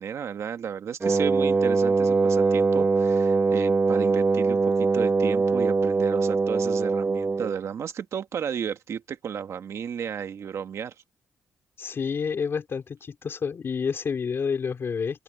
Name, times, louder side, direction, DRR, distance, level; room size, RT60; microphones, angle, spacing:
voice 1, 0.0-10.9, right 8 dB, 65° right, 1.7 m, -33 dB
Wind instrument woodwind instrument, 1.0-7.6, right 4 dB, 30° right, 1.0 m, -22 dB
voice 2, 11.8-15.2, left 6 dB, 50° left, 4.3 m, -29 dB
open air
cardioid pair, 110°, 5 cm